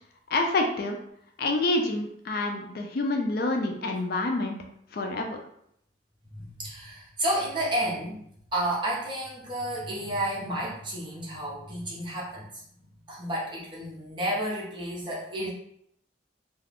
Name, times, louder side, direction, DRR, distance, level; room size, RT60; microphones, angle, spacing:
voice 1, 0.3-1.0 1.4-4.6 4.9-5.4, left 2 dB, 55° left, 3 dB, 0.4 m, -27 dB
voice 2, 6.3-8.2 8.5-12.6 13.1-15.5, right 1 dB, 25° right, -5 dB, 0.8 m, -31 dB
2.4 x 2.4 x 3.4 m, 0.72 s
head